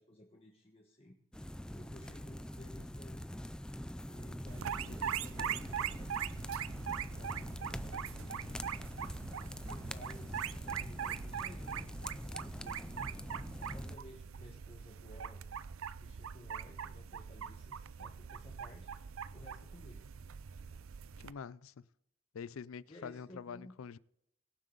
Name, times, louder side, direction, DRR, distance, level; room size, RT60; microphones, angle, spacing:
voice 1, 0.0-3.3 4.0-6.5 7.0-8.8 9.7-13.1 13.7-15.4 16.0-18.9 19.3-20.0 20.7-20.8 22.9-23.8, left 1 dB, 30° left, 1.4 m, -56 dB
sound 1, 1.3-14.0, left 1 dB, 5° left, 0.4 m, -44 dB
sound 2, 4.5-21.3, right 8 dB, 80° right, 0.5 m, -42 dB
voice 2, 21.2-21.7 22.3-24.0, left 6 dB, 80° left, 0.4 m, -46 dB
22.5 x 7.6 x 3.9 m
head